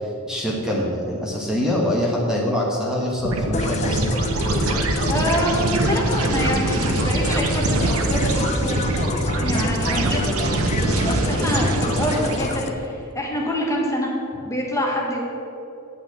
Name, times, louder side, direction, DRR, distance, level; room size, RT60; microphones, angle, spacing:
voice 1, 0.0-4.0, left 1 dB, 5° right, -4 dB, 1.3 m, -24 dB
sound 1, 3.2-12.6, right 2 dB, 75° right, 0.9 m, -23 dB
sound 2, 3.5-12.7, left 4 dB, 30° left, 0.5 m, -30 dB
voice 2, 5.1-8.8 9.4-14.1 14.4-15.2, equal, 15° left, -2 dB, 1.3 m, -26 dB
8.8 x 5.7 x 8.1 m, 2.7 s
head